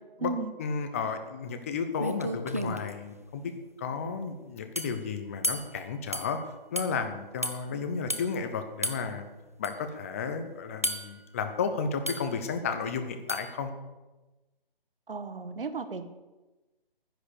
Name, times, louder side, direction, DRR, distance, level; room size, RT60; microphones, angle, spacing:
voice 1, 0.6-3.5 3.8-6.4 6.7-9.3 9.6-13.7, left 5 dB, 15° left, 8 dB, 0.7 m, -33 dB
sound 1, 1.6-1.7 2.0-2.9 4.8-5.0 5.4-5.7 6.1-6.3 6.8-6.9 7.4-7.6 8.1-8.3 8.8-9.0 9.6-9.7 10.8-11.2 12.1-12.3 13.3-13.5, equal, 15° right, 0.3 m, -32 dB
voice 2, 15.1-16.1, right 4 dB, 70° right, 10 dB, 1.6 m, -34 dB
11.0 x 10.0 x 6.7 m, 1.1 s
figure-of-eight pair, 155°, 29 cm